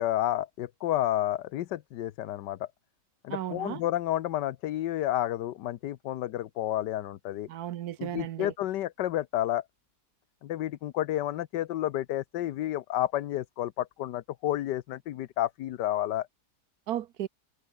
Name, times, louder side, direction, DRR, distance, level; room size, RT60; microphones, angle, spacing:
voice 1, 0.0-2.7 3.2-7.5 8.0-9.6 10.4-16.3, left 13 dB, 80° left, 1.4 m, -30 dB
voice 2, 3.3-3.8 7.5-8.5 16.9-17.3, right 12 dB, 70° right, 1.2 m, -35 dB
omnidirectional pair, 1.8 m